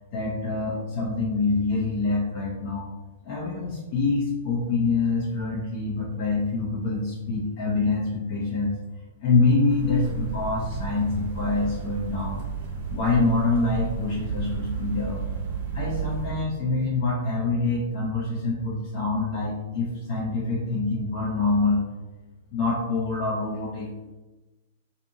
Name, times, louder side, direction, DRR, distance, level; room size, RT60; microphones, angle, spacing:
voice 1, 0.1-2.9 3.2-8.8 9.2-12.5 12.9-15.2 15.7-21.8 22.5-23.9, left 3 dB, 45° left, -5 dB, 0.6 m, -25 dB
sound 1, 9.7-16.3, right 5 dB, 50° right, 0.7 m, -32 dB
2.6 x 2.6 x 2.7 m, 1.1 s
figure-of-eight pair, 105°, 0 cm